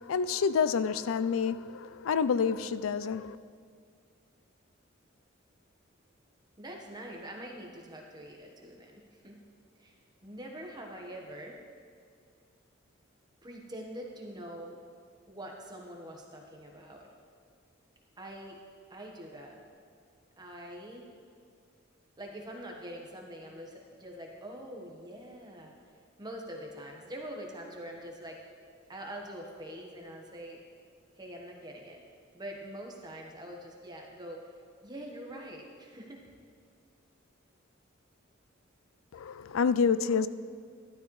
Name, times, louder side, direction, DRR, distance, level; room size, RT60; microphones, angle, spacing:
voice 1, 0.0-3.4 39.1-40.3, left 6 dB, 90° left, 0.4 m, -28 dB
voice 2, 6.6-9.4 9.8-10.0 10.2-11.6 13.4-14.8 15.3-17.1 18.2-18.6 18.9-19.6 20.4-21.1 22.2-25.8 26.2-28.4 28.9-30.6 31.2-32.0 32.3-34.5 34.8-36.2, right 1 dB, 20° right, 1.2 m, -44 dB
12.5 x 12.0 x 3.2 m
head